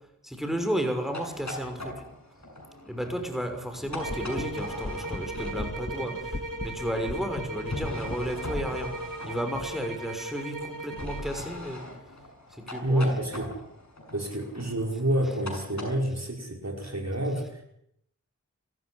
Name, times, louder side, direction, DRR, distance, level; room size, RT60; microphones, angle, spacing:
voice 1, 0.2-2.0 2.8-11.8 12.5-13.2, equal, ahead, 5 dB, 6.0 m, -33 dB
sound 1, 1.0-6.0 7.6-9.9 10.9-15.9, left 1 dB, 65° left, 7.4 m, -41 dB
sound 2, 3.8-8.8, left 2 dB, 35° left, 2.3 m, -39 dB
sound 3, 4.0-11.4, right 2 dB, 85° right, 2.6 m, -37 dB
voice 2, 12.8-13.5 14.1-17.6, right 1 dB, 55° right, 2 dB, 5.3 m, -28 dB
30.0 x 14.5 x 10.0 m, 0.74 s
wide cardioid pair, 50°, 31 cm